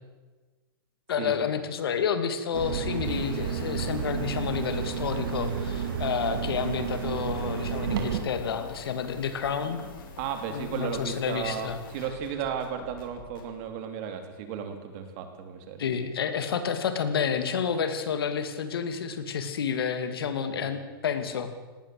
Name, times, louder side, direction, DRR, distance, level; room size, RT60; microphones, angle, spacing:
voice 1, 1.1-9.8 10.5-11.8 15.8-21.5, left 7 dB, 85° left, 9 dB, 2.7 m, -30 dB
sound 1, 2.5-8.2, right 7 dB, 65° right, 4.2 m, -31 dB
sound 2, 3.0-13.6, left 5 dB, 65° left, 4.4 m, -45 dB
voice 2, 10.2-15.8 20.5-20.7, right 7 dB, 40° right, 7 dB, 3.3 m, -34 dB
18.5 x 18.5 x 7.9 m, 1.3 s
supercardioid pair, 160°, 12 cm